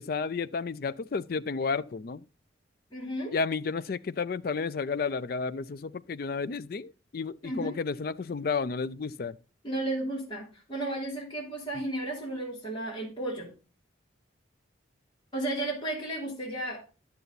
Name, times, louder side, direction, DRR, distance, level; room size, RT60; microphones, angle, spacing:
voice 1, 0.0-2.2 3.3-9.4, left 4 dB, 50° left, 0.4 m, -32 dB
voice 2, 2.9-3.3 7.4-7.7 9.6-13.5 15.3-16.8, right 1 dB, 25° left, 3.2 m, -33 dB
11.0 x 6.9 x 4.0 m
head